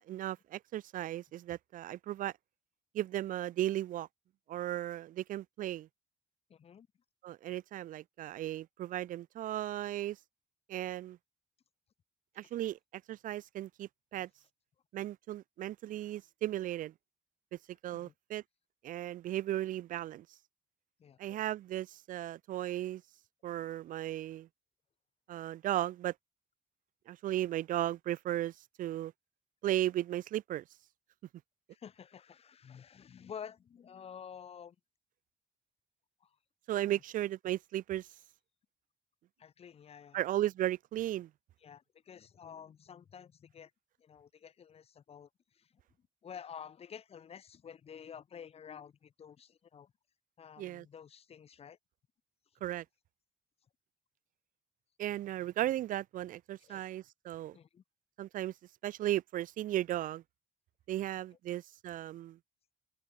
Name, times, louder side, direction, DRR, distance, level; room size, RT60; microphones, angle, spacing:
voice 1, 0.1-2.3 2.9-4.1 4.5-5.9 7.2-10.2 10.7-11.2 12.4-12.8 13.1-14.3 14.9-16.9 17.8-18.4 18.8-20.2 21.2-23.0 23.4-24.5 25.3-26.1 27.1-28.5 28.8-29.1 29.6-30.6 36.7-38.1 40.1-41.3 50.6-50.9 52.6-52.8 55.0-57.6 58.2-58.5 58.8-60.2 60.9-62.4, right 13 dB, 80° right, 0.7 m, -35 dB
voice 2, 6.5-6.9 17.9-18.1 21.0-21.4 31.7-34.8 36.2-36.3 36.8-36.9 39.4-40.2 41.6-43.7 44.0-45.7 46.2-49.9 50.4-51.8 56.6-56.8 57.5-57.8, left 8 dB, 50° left, 1.8 m, -50 dB
open air
cardioid pair, 130°, 14 cm